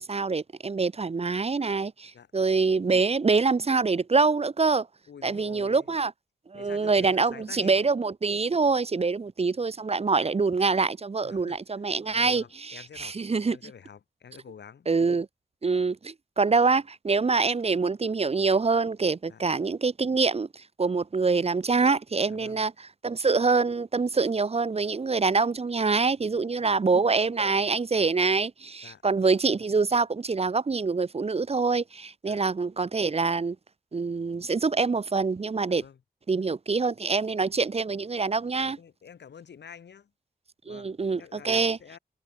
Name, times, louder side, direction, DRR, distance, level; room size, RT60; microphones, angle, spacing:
voice 1, 0.0-4.9 5.2-6.1 6.5-12.4 12.7-13.6 14.9-15.3 15.6-33.6 33.9-35.8 36.3-38.8 40.7-41.8, right 4 dB, 35° right, 0.6 m, -25 dB
voice 2, 5.1-5.9 6.5-7.9 11.2-11.6 12.1-13.2 13.5-14.9 19.3-19.4 22.3-22.6 26.2-26.8 28.8-29.0 32.2-32.4 35.7-36.0 38.6-40.1 40.6-42.0, left 7 dB, 85° left, 7.2 m, -48 dB
cardioid pair, 50°, 17 cm